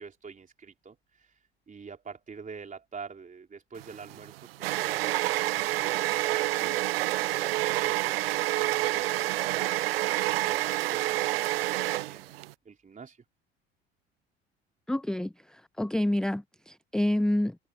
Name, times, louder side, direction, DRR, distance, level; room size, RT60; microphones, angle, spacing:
voice 1, 0.0-5.1 5.5-8.1 8.4-9.7 10.3-11.1 11.6-13.2, right 5 dB, 25° right, 3.7 m, -46 dB
sound 1, 3.8-12.5, right 17 dB, 70° right, 0.6 m, -28 dB
voice 2, 14.9-17.6, left 1 dB, ahead, 0.6 m, -28 dB
figure-of-eight pair, 60°, 30 cm